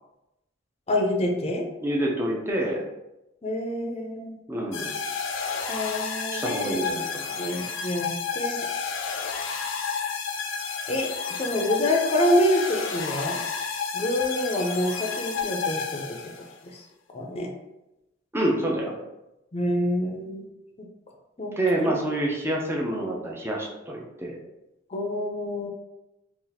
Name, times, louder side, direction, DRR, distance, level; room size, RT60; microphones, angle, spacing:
voice 1, 0.9-1.6 3.4-4.4 5.7-6.8 7.4-8.7 10.9-13.4 13.9-16.0 16.7-16.8 17.1-17.5 19.5-20.5 21.4-21.5 24.9-25.7, left 1 dB, 35° left, 2 dB, 0.5 m, -26 dB
voice 2, 1.8-2.8 4.5-5.0 6.3-7.3 18.3-18.9 21.6-24.4, right 1 dB, 15° right, -1 dB, 0.5 m, -27 dB
sound 1, 4.7-16.5, left 5 dB, 90° left, 0.4 m, -31 dB
2.7 x 2.4 x 3.9 m, 0.93 s
head